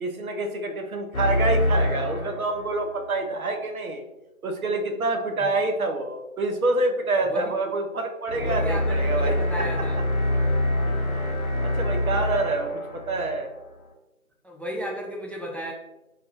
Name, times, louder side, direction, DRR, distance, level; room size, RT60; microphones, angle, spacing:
voice 1, 0.0-4.0 4.4-9.9 10.9-11.0 11.6-13.5, right 2 dB, 80° right, 4 dB, 0.5 m, -27 dB
sound 1, 1.1-3.2 8.3-13.9, left 1 dB, 85° left, 0.6 m, -26 dB
voice 2, 8.4-10.0 14.4-15.7, equal, 5° left, 1 dB, 0.3 m, -33 dB
2.3 x 2.1 x 2.8 m, 0.94 s
figure-of-eight pair, 170°, 42 cm